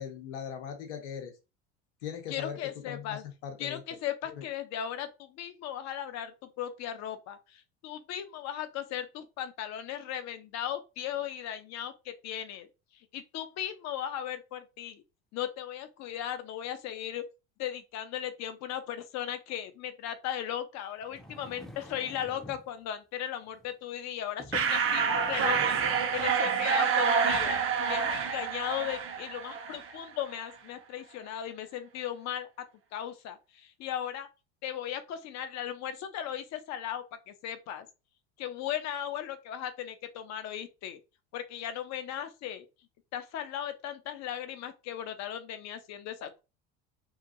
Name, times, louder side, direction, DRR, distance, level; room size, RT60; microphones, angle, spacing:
voice 1, 0.0-1.3 2.0-2.6 2.9-3.8 4.4-4.5, left 8 dB, 80° left, 0.9 m, -39 dB
voice 2, 2.3-3.2 3.6-12.7 13.1-15.0 15.3-17.2 17.6-25.8 26.1-27.6 27.9-32.5 32.9-34.3 34.6-37.9 38.4-41.0 41.3-42.7 43.1-46.4, left 10 dB, 50° left, 0.7 m, -37 dB
sound 1, 21.0-22.7 23.5-23.7 24.4-26.4 27.0-27.1, equal, ahead, 0.6 m, -47 dB
sound 2, 24.5-30.0, right 6 dB, 35° right, 0.7 m, -28 dB
2.9 x 2.5 x 2.5 m
hypercardioid pair, 85°, 34 cm